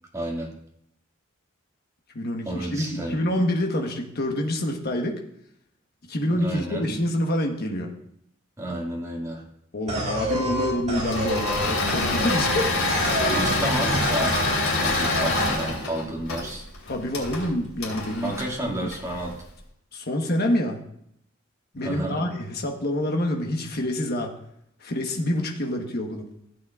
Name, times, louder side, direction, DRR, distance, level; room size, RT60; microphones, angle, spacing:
voice 1, 0.1-0.5 2.4-3.2 6.3-7.0 8.6-9.4 13.4-16.7 18.2-19.4 21.8-22.2, right 1 dB, 15° right, -2 dB, 2.1 m, -31 dB
voice 2, 2.1-5.2 6.1-7.9 9.7-12.7 13.2-13.4 16.9-18.3 18.8-18.9 19.9-20.8 21.7-24.3 24.8-26.3, left 1 dB, 50° left, 2 dB, 1.3 m, -27 dB
sound 1, 9.9-13.6 13.9-14.6 14.9-15.6, right 1 dB, 35° right, 2.3 m, -29 dB
Engine / Mechanisms, 10.9-19.3, left 2 dB, 85° left, 3.3 m, -26 dB
15.5 x 8.4 x 2.4 m, 0.74 s
head